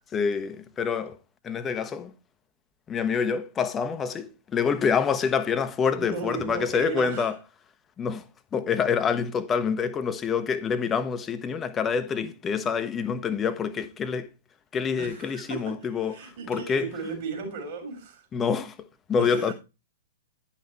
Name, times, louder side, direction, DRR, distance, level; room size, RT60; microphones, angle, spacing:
voice 1, 0.1-1.2 1.4-2.1 2.9-7.3 8.0-8.2 8.5-14.3 14.7-16.2 16.5-16.9 18.3-18.7 19.1-19.5, left 6 dB, 20° left, 0.8 m, -26 dB
voice 2, 5.9-7.3 15.0-18.2 19.2-19.5, right 5 dB, 50° right, 3.5 m, -36 dB
10.5 x 5.8 x 4.4 m
figure-of-eight pair, 105°, 0 cm